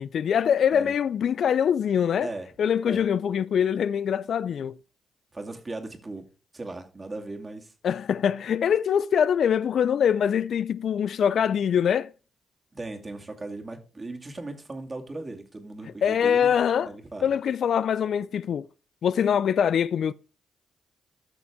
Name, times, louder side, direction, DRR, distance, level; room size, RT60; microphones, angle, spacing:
voice 1, 0.0-2.3 2.6-4.8 7.8-12.1 16.0-16.9 17.2-18.7 19.0-20.1, left 8 dB, 65° left, 0.3 m, -23 dB
voice 2, 2.2-2.5 2.9-3.0 5.3-6.2 6.5-7.7 12.7-16.5 16.8-17.3, right 2 dB, 30° right, 2.3 m, -37 dB
13.5 x 6.1 x 3.5 m
supercardioid pair, 50°, 0 cm